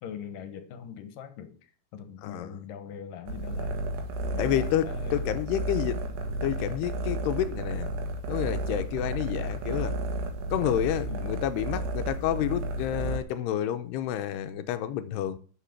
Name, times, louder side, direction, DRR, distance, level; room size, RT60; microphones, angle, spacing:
voice 1, 0.0-3.8 4.3-5.3 11.1-11.5, left 7 dB, 65° left, 2.4 m, -42 dB
sound 1, 3.3-13.2, right 1 dB, 80° right, 3.7 m, -32 dB
voice 2, 4.4-4.9 5.1-6.0 6.3-7.9 8.3-10.0 10.5-15.4, left 11 dB, 85° left, 2.8 m, -29 dB
11.5 x 5.9 x 7.2 m
omnidirectional pair, 4.8 m